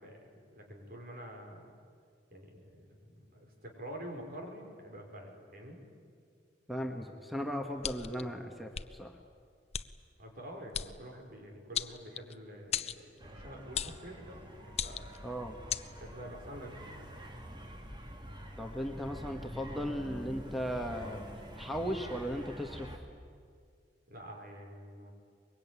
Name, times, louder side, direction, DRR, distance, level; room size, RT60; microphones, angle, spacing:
voice 1, 0.0-1.6 2.3-5.8 10.2-15.1 16.0-17.0 24.1-25.1, equal, 55° right, 2 dB, 5.4 m, -47 dB
voice 2, 6.7-9.1 15.2-15.6 18.6-21.2 21.6-22.9, equal, ahead, 3 dB, 1.6 m, -37 dB
sound 1, 7.8-8.2 8.7-8.9 9.7-9.9 10.7-10.9 11.7-12.3 12.7-13.0 13.7-14.0 14.7-15.2 15.7-15.9, left 8 dB, 35° left, 0.7 m, -35 dB
sound 2, 13.2-23.0, equal, 25° right, 2.7 m, -47 dB
23.5 x 22.5 x 9.8 m, 2.2 s
head